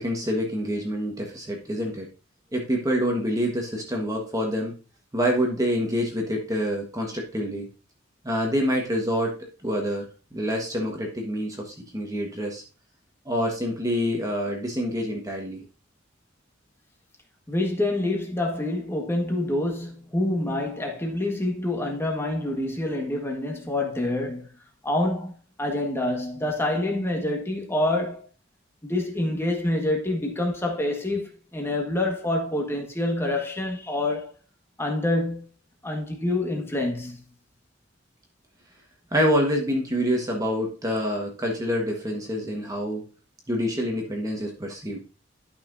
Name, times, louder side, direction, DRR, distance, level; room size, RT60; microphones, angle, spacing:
voice 1, 0.0-2.1 2.5-4.8 5.1-7.7 8.2-9.4 9.6-12.6 13.2-15.6 39.1-43.1 43.5-45.0, equal, 20° right, 1.4 m, -26 dB
voice 2, 17.5-24.5 24.8-28.2 28.8-34.3 34.8-35.4 35.8-37.2, left 1 dB, 15° left, 1.5 m, -27 dB
12.0 x 5.8 x 2.6 m
head